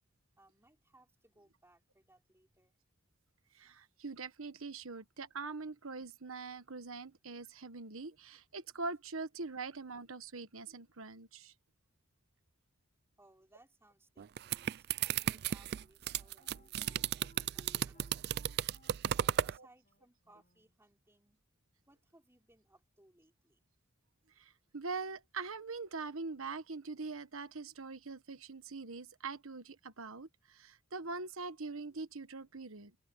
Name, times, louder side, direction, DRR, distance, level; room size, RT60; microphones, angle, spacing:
voice 1, 0.4-2.8 13.2-18.5 19.1-21.4 21.9-23.7, right 1 dB, 10° right, 5.5 m, -66 dB
voice 2, 3.5-11.5 19.6-19.7 24.4-33.0, right 4 dB, 70° right, 1.3 m, -43 dB
sound 1, 14.2-19.6, right 10 dB, 50° right, 0.3 m, -34 dB
Wind instrument woodwind instrument, 14.9-20.8, left 2 dB, 40° left, 7.0 m, -66 dB
open air
head